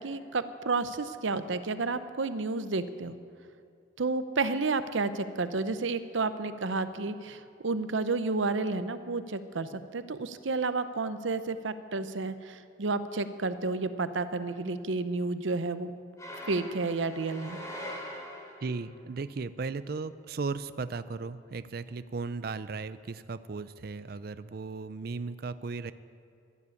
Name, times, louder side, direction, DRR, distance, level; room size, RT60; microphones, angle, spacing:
voice 1, 0.0-3.2 4.0-15.9 16.5-17.6, right 3 dB, 80° right, 12 dB, 0.8 m, -31 dB
sound 1, 16.2-18.8, left 1 dB, 15° left, 2.6 m, -42 dB
voice 2, 18.6-25.9, right 4 dB, 50° right, 14 dB, 0.4 m, -36 dB
12.5 x 12.0 x 8.4 m, 2.5 s
head